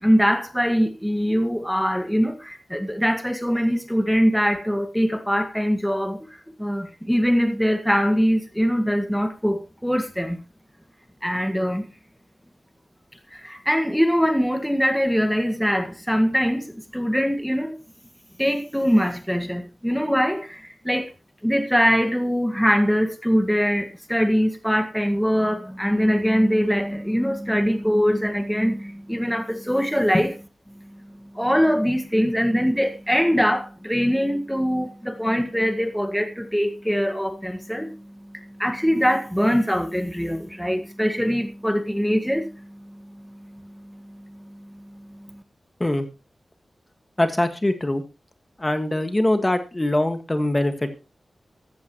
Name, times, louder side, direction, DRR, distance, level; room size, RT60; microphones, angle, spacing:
voice 1, 0.0-6.3 6.6-10.4 11.2-11.9 13.3-17.8 18.4-21.1 21.4-30.3 30.9-45.4, equal, ahead, 1.7 m, -23 dB
voice 2, 47.2-48.0 48.6-51.0, left 1 dB, 20° left, 1.7 m, -23 dB
14.5 x 14.0 x 3.0 m
wide cardioid pair, 70°, 0 cm